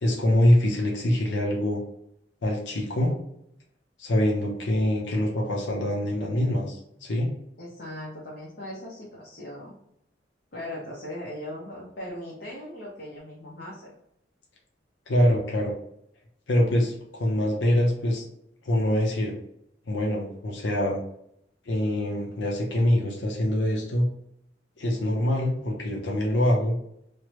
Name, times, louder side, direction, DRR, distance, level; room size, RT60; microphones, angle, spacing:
voice 1, 0.0-1.8 2.4-3.2 4.0-7.3 15.1-15.7 16.5-18.2 18.6-19.3 19.9-21.0 21.7-24.1 24.8-26.8, left 1 dB, 90° left, -1 dB, 0.6 m, -24 dB
voice 2, 7.6-9.7 10.5-13.9, left 1 dB, 55° left, -5 dB, 0.8 m, -39 dB
3.2 x 2.1 x 3.0 m, 0.75 s
head